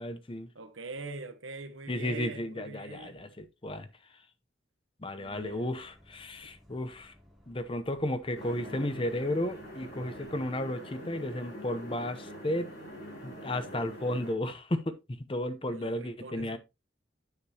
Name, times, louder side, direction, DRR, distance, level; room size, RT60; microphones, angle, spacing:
voice 1, 0.0-0.5 1.9-3.9 5.0-7.1 7.5-12.7 13.2-15.0 15.3-16.6, left 1 dB, 25° left, 0.7 m, -33 dB
voice 2, 0.5-3.3 5.2-5.7 15.7-16.6, right 3 dB, 85° right, 1.1 m, -43 dB
Bus, 5.2-10.2, equal, ahead, 3.1 m, -60 dB
sound 1, 8.3-14.3, equal, 60° left, 5.5 m, -44 dB
9.8 x 6.6 x 2.8 m
head